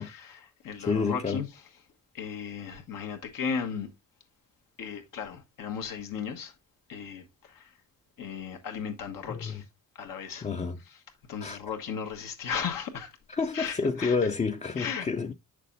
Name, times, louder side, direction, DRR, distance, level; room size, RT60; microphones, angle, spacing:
voice 1, 0.0-1.5 2.1-3.9 4.8-6.5 6.9-7.7 8.2-9.7 9.9-10.5 10.9-11.0 11.3-13.1 13.5-14.2 14.8-15.1, left 6 dB, 90° left, 1.5 m, -36 dB
voice 2, 0.8-1.4 9.3-9.6 10.4-10.8 11.4-11.6 13.3-15.3, left 4 dB, 20° left, 0.4 m, -29 dB
7.5 x 6.6 x 2.6 m
cardioid pair, 120°, 32 cm